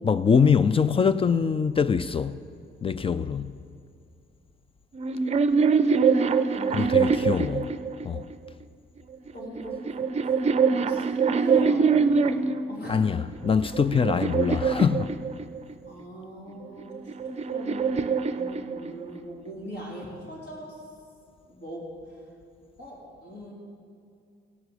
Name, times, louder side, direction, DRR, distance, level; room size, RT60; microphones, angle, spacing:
voice 1, 0.0-2.4 2.8-3.5 6.7-7.7 8.0-8.3 12.9-15.1, left 6 dB, 30° left, 0.4 m, -23 dB
sound 1, 4.9-8.3 9.3-12.7 13.3-15.7 16.8-19.2, right 5 dB, 35° right, 0.5 m, -24 dB
voice 2, 6.5-7.3 9.3-13.1 15.8-17.0 17.3-20.8 21.4-22.2 22.8-23.5, equal, 55° left, 3.8 m, -41 dB
16.0 x 6.0 x 8.2 m
cardioid pair, 90°, 20 cm